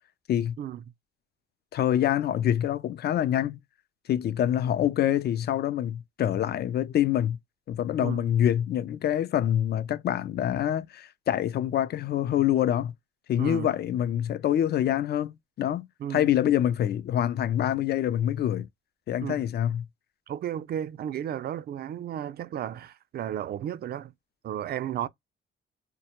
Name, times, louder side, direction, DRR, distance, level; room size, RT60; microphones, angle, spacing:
voice 1, 1.7-3.6 4.1-7.4 7.7-12.9 13.3-18.7 19.1-19.8, left 11 dB, 55° left, 0.4 m, -26 dB
voice 2, 13.4-13.7 16.0-16.3 19.2-19.4 20.3-24.1 24.4-25.1, right 10 dB, 55° right, 0.4 m, -33 dB
2.2 x 2.1 x 2.8 m
cardioid pair, 90°, 20 cm